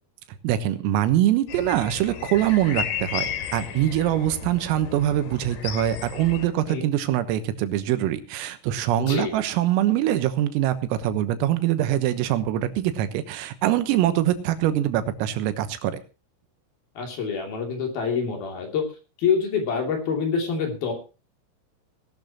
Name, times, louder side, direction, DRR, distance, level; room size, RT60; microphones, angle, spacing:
voice 1, 0.4-16.0, right 12 dB, 85° right, 10 dB, 3.9 m, -23 dB
sound 1, 1.5-6.5, left 8 dB, 65° left, 4.3 m, -33 dB
voice 2, 9.0-9.3 17.0-18.8 19.2-20.9, left 6 dB, 50° left, 2 dB, 4.4 m, -26 dB
19.5 x 12.0 x 3.0 m, 0.31 s
omnidirectional pair, 5.9 m